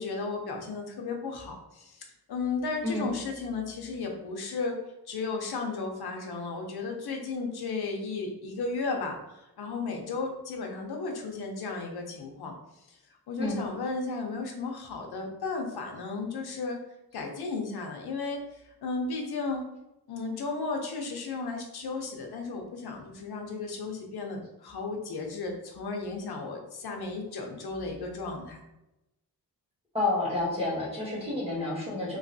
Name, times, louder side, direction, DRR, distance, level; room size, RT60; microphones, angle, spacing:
voice 1, 0.0-4.8 5.1-16.8 17.1-19.6 20.1-28.6, left 4 dB, 75° left, 2 dB, 0.7 m, -34 dB
voice 2, 29.9-32.2, left 2 dB, 15° right, -8 dB, 1.5 m, -29 dB
3.1 x 2.9 x 2.6 m, 0.91 s
wide cardioid pair, 135°, 39 cm